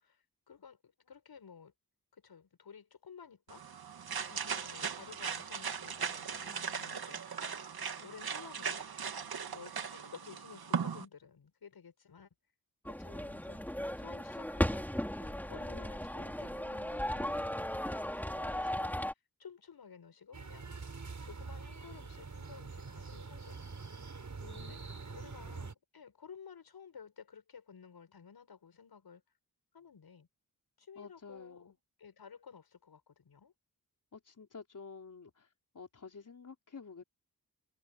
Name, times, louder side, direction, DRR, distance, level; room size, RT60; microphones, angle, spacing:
voice 1, 0.0-1.7 2.1-3.6 4.3-7.2 8.0-8.8 9.2-12.3 12.9-13.6 14.0-14.9 15.2-18.9 19.4-20.7 21.2-23.8 24.6-24.8 25.1-29.2 29.7-30.3 30.8-31.7 32.0-33.5, left 6 dB, 85° left, 7.7 m, -54 dB
sound 1, 3.5-11.0, right 6 dB, 75° right, 2.3 m, -38 dB
sound 2, 12.8-19.1, equal, 5° left, 3.6 m, -36 dB
sound 3, 20.3-25.7, right 4 dB, 50° right, 7.1 m, -45 dB
voice 2, 24.4-25.7 31.0-31.8 34.1-35.5 35.7-37.0, left 5 dB, 55° left, 4.1 m, -51 dB
wide cardioid pair, 95°, 37 cm